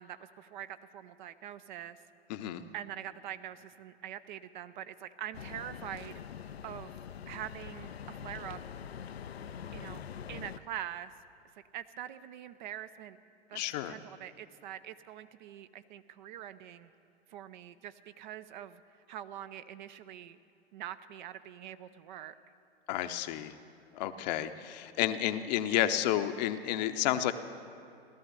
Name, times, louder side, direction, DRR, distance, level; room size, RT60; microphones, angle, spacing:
voice 1, 0.0-2.0 2.7-6.2 6.6-7.0 7.3-8.6 9.7-10.0 10.3-11.1 11.7-13.2 13.5-13.6 13.8-16.9 17.3-18.8 19.1-20.4 20.7-22.3, right 11 dB, 50° right, 13 dB, 0.6 m, -44 dB
voice 2, 2.3-2.6 13.5-14.0 22.9-23.5 23.9-27.3, left 12 dB, 40° left, 10 dB, 0.8 m, -31 dB
sound 1, 5.3-10.6, left 8 dB, 75° left, 0.6 m, -44 dB
16.5 x 13.0 x 6.7 m, 2.5 s
figure-of-eight pair, 100°, 31 cm